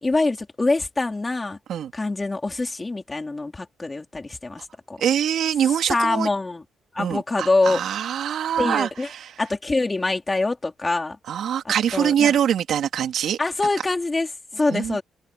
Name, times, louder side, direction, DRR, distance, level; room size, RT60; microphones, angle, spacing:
voice 1, 0.0-1.6 1.9-5.0 5.9-6.6 6.9-7.8 8.6-9.1 9.4-11.2 11.6-12.4 13.4-15.0, left 3 dB, 20° left, 4.2 m, -24 dB
voice 2, 5.0-6.3 7.0-8.9 11.3-13.4 14.7-15.0, right 9 dB, 70° right, 2.9 m, -23 dB
cardioid pair, 90°, 0 cm